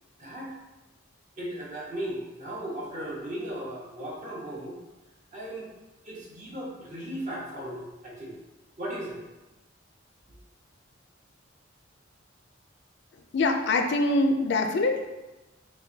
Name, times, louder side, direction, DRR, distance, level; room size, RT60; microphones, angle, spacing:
voice 1, 0.2-0.5 1.4-4.8 5.3-5.7 6.0-8.4 8.8-9.2, right 1 dB, 40° right, -4 dB, 1.0 m, -36 dB
voice 2, 13.3-15.1, left 2 dB, 60° left, 5 dB, 0.4 m, -24 dB
6.6 x 2.2 x 2.7 m, 1.1 s
head